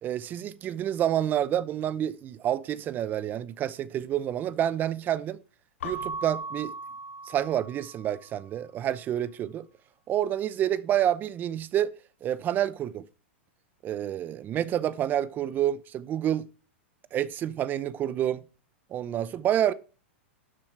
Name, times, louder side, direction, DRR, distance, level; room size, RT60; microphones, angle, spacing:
voice 1, 0.0-5.4 5.8-6.7 7.3-9.6 10.1-11.9 12.2-13.0 13.8-16.5 17.1-18.4 18.9-19.7, right 11 dB, 30° right, 0.7 m, -28 dB
Keyboard (musical) / Bell, 5.8-8.2, right 2 dB, 80° left, 2.5 m, -38 dB
12.0 x 7.1 x 4.5 m
hypercardioid pair, 135°, 7 cm